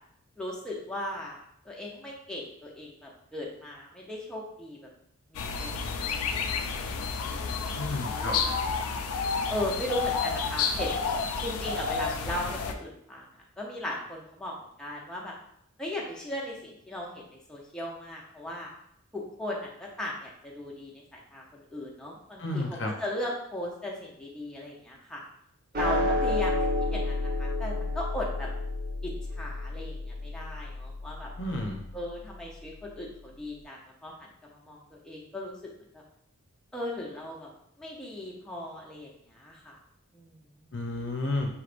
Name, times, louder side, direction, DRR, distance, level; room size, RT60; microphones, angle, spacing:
voice 1, 0.4-1.4 1.6-4.8 5.3-6.3 6.7-7.8 8.2-8.5 9.5-11.0 11.4-13.3 13.6-15.4 15.8-18.7 19.1-25.2 25.7-26.6 26.9-28.5 29.0-31.3 31.9-36.0 36.7-37.5 37.8-39.8 40.1-40.7, left 1 dB, 5° left, -3 dB, 0.7 m, -37 dB
sound 1, 5.3-12.7, left 5 dB, 90° left, 0.4 m, -30 dB
voice 2, 7.8-8.3 22.4-22.9 31.4-31.8 40.7-41.5, left 2 dB, 55° left, 1 dB, 0.7 m, -31 dB
sound 2, 25.7-32.3, left 2 dB, 40° right, 0.4 m, -31 dB
5.8 x 3.2 x 2.5 m, 0.72 s
head